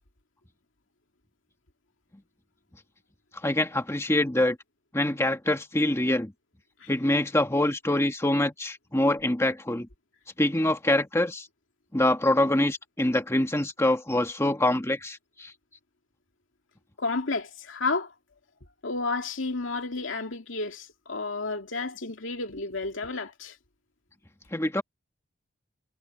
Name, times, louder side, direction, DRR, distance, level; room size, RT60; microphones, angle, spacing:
voice 1, 3.4-4.6 4.9-6.3 6.9-9.9 10.4-11.5 11.9-15.5 24.5-24.8, left 1 dB, 15° left, 1.5 m, -25 dB
voice 2, 17.0-18.1 18.8-23.6, left 3 dB, 75° left, 2.4 m, -31 dB
head